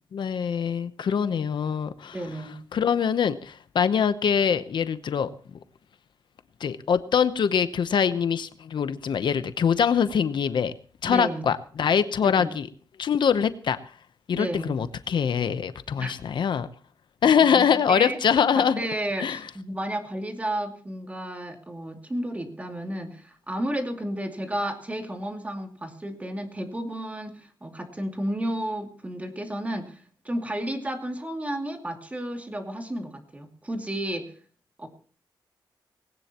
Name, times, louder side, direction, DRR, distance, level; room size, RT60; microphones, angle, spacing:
voice 1, 0.1-2.1 2.7-5.3 6.6-10.7 11.0-12.7 13.0-13.8 14.3-16.7 17.2-18.8 19.2-19.4, left 7 dB, 70° left, 12 dB, 0.9 m, -23 dB
voice 2, 2.1-2.6 11.0-11.4 12.2-12.5 14.3-14.8 16.0-16.1 17.4-18.2 18.5-34.3 34.8-34.9, right 1 dB, 15° right, 4 dB, 2.5 m, -32 dB
19.5 x 18.0 x 3.0 m, 0.42 s
wide cardioid pair, 135°, 8 cm